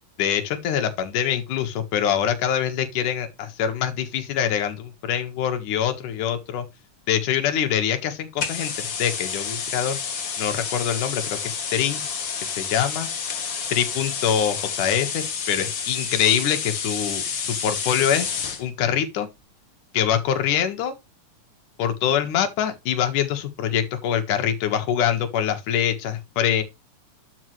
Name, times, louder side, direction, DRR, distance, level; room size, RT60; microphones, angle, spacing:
voice 1, 0.2-6.7 7.1-10.0 10.4-12.1 12.6-13.1 13.7-18.3 18.6-19.3 19.9-20.9 21.8-26.6, left 9 dB, 70° left, 3.0 m, -24 dB
sound 1, 8.4-18.6, left 6 dB, 50° left, 1.5 m, -29 dB
12.0 x 5.7 x 3.2 m
omnidirectional pair, 3.8 m